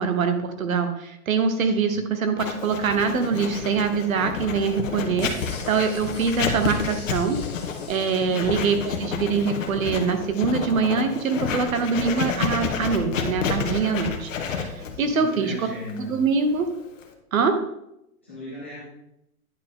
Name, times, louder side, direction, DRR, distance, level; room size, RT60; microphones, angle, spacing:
voice 1, 0.0-7.4 7.9-15.5 16.0-16.7 17.3-17.5, right 5 dB, 65° right, 8 dB, 1.1 m, -24 dB
Writing, 2.4-17.1, left 6 dB, 60° left, 1.1 m, -30 dB
sound 1, 5.2-9.6 10.0-10.1, left 4 dB, 25° left, 0.9 m, -43 dB
voice 2, 15.0-16.1 18.2-18.8, left 2 dB, 10° left, -10 dB, 0.5 m, -37 dB
9.5 x 4.4 x 3.6 m, 0.80 s
hypercardioid pair, 180°, 45 cm